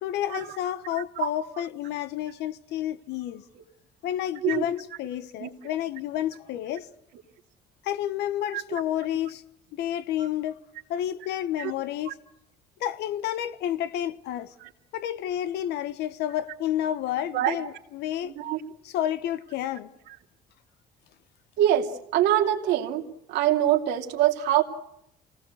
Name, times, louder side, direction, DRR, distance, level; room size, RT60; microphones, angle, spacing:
voice 1, 0.0-3.4 4.0-6.9 7.8-9.4 9.7-10.6 10.9-12.2 12.8-14.5 14.9-18.3 18.8-19.9, left 11 dB, 85° left, 1.2 m, -30 dB
voice 2, 0.9-1.3 4.4-4.6 5.4-5.5 8.5-8.6 11.6-11.7 12.1-12.2 17.3-17.6 18.2-18.6 21.6-23.0 23.3-24.6, right 12 dB, 90° right, 2.7 m, -24 dB
27.5 x 18.5 x 8.0 m
cardioid pair, 110°, 17 cm